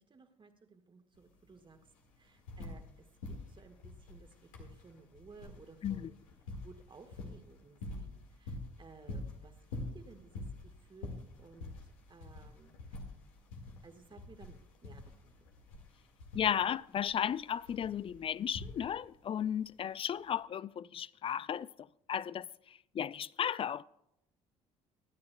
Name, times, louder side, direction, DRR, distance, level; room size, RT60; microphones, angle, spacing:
voice 1, 0.0-1.9 2.2-6.2 6.6-11.7 12.1-13.0 13.8-14.6 14.8-15.3 15.6-15.7, right 4 dB, 30° right, 1.5 m, -57 dB
sound 1, 1.1-1.2 1.5-2.9 3.2-19.2 20.2-20.3, left 2 dB, 85° left, 1.8 m, -46 dB
voice 2, 16.3-21.7 22.1-23.8, left 9 dB, 35° left, 0.3 m, -34 dB
23.0 x 9.5 x 2.2 m
hypercardioid pair, 65°, 17 cm